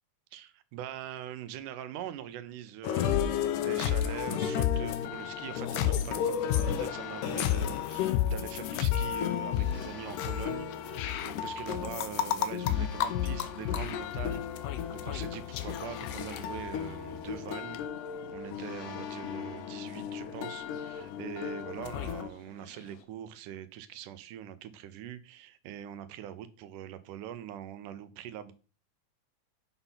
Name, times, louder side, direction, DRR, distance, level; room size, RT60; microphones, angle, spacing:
voice 1, 0.3-28.5, right 10 dB, 85° right, 12 dB, 2.2 m, -43 dB
sound 1, 2.8-22.3, left 10 dB, 85° left, 2.2 m, -32 dB
sound 2, 5.1-23.0, left 8 dB, 65° left, 1.8 m, -49 dB
6.9 x 4.0 x 5.6 m, 0.36 s
omnidirectional pair, 3.6 m